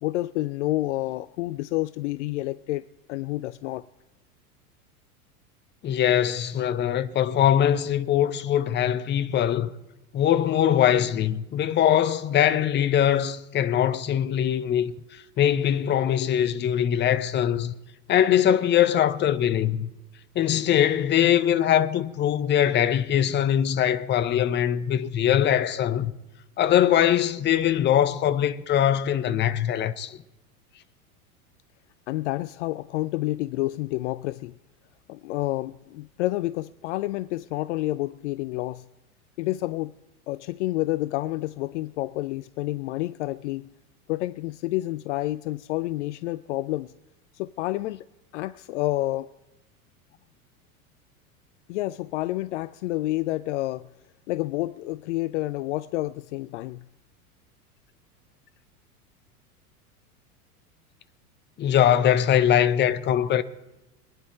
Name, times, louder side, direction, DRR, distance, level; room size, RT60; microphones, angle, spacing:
voice 1, 0.0-2.8 3.1-3.8 32.1-34.5 35.1-38.8 39.4-39.9 40.3-43.7 44.1-46.9 47.3-48.1 48.3-49.3 51.7-53.9 54.3-56.8, left 17 dB, 55° left, 0.5 m, -29 dB
voice 2, 5.8-9.7 10.1-14.9 15.4-17.7 18.1-19.9 20.3-26.1 26.6-30.2 61.6-63.4, left 10 dB, 25° left, 0.8 m, -22 dB
23.0 x 9.6 x 4.4 m
figure-of-eight pair, 90°, 44 cm